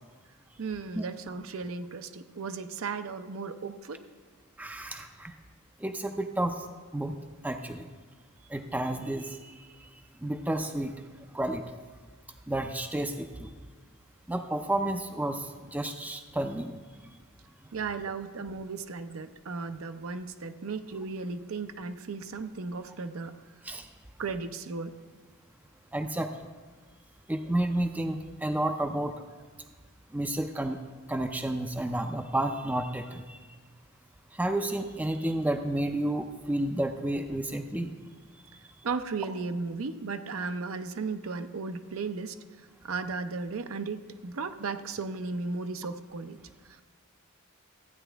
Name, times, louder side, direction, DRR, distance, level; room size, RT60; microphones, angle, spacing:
voice 1, 0.6-4.0 17.7-23.3 24.2-25.0 38.8-42.4 42.8-46.4, right 4 dB, 65° right, 9 dB, 0.6 m, -35 dB
voice 2, 4.6-5.3 5.8-6.6 6.9-7.1 7.4-7.9 8.5-9.5 10.2-10.9 11.3-11.6 12.5-13.5 14.3-16.7 23.6-23.9 25.9-26.3 27.3-29.1 30.1-30.8 31.1-33.4 34.4-37.9, right 1 dB, 5° right, 6 dB, 0.4 m, -31 dB
14.5 x 9.0 x 3.4 m, 1.5 s
head